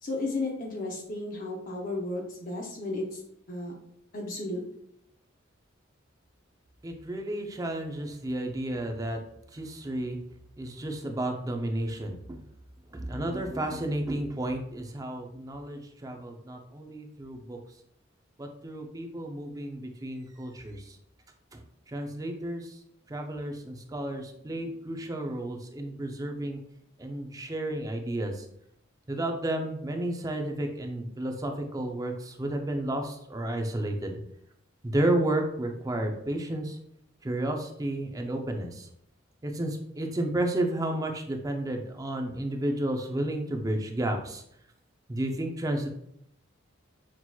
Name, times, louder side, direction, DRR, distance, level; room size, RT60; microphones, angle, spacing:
voice 1, 0.0-3.2 3.5-3.7 4.1-4.6, left 2 dB, 45° left, -2 dB, 0.7 m, -33 dB
voice 2, 6.8-9.2 9.5-10.2 10.6-12.4 12.9-17.6 18.4-20.8 21.5-21.6 21.9-22.7 23.1-26.6 27.0-28.3 29.1-34.1 34.8-36.8 37.2-38.9 39.4-44.4 45.1-45.9, right 1 dB, 15° right, 3 dB, 0.4 m, -32 dB
5.9 x 2.9 x 2.3 m, 0.74 s
head